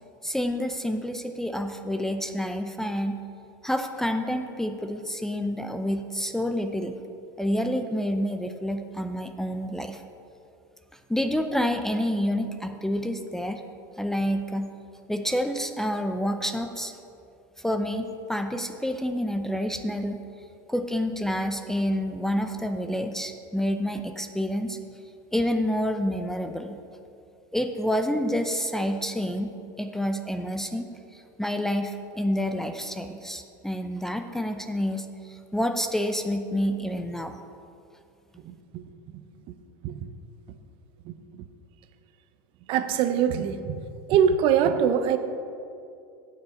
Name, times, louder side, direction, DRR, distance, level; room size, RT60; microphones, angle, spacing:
voice 1, 0.2-3.2 3.6-6.9 7.4-10.0 11.1-13.6 14.0-14.7 15.1-16.9 17.6-20.2 20.7-24.8 25.3-26.8 27.5-29.5 29.8-30.8 31.1-37.4, equal, 5° left, 7 dB, 0.6 m, -28 dB
voice 2, 38.4-38.8 39.8-40.1 42.7-43.8 44.1-45.2, right 8 dB, 50° right, 10 dB, 0.8 m, -23 dB
16.5 x 6.2 x 4.3 m, 2.6 s
hypercardioid pair, 105°, 11 cm